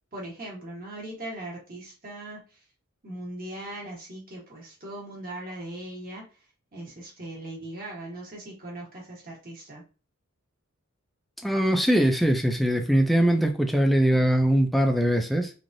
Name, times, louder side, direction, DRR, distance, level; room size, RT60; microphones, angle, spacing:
voice 1, 0.1-2.4 3.0-6.2 6.7-9.8, right 1 dB, 40° right, 1.2 m, -39 dB
voice 2, 11.4-15.5, equal, ahead, 0.3 m, -22 dB
3.1 x 2.4 x 2.6 m
head